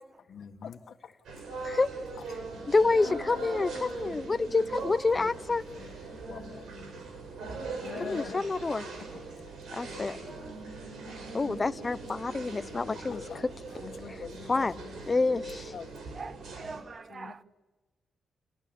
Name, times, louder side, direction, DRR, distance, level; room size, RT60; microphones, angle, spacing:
voice 1, 0.3-0.8 5.1-5.3 5.8-5.9 6.3-6.6 6.9-7.0 7.8-8.4 9.9-10.3 12.8-13.4 13.8-15.0 15.7-15.9 17.1-17.4, left 7 dB, 65° left, 1.7 m, -43 dB
sound 1, 1.2-16.8, right 3 dB, 90° right, 6.0 m, -41 dB
voice 2, 2.7-5.6 8.0-8.9 9.7-10.2 11.3-13.5 14.1-14.2 14.5-14.8 15.1-15.7, left 3 dB, 30° left, 0.7 m, -28 dB
voice 3, 7.8-8.2 9.8-10.0 10.9-11.3 14.6-14.7 16.1-17.4, right 4 dB, 40° right, 0.7 m, -45 dB
29.5 x 19.5 x 7.0 m
cardioid pair, 105°, 0 cm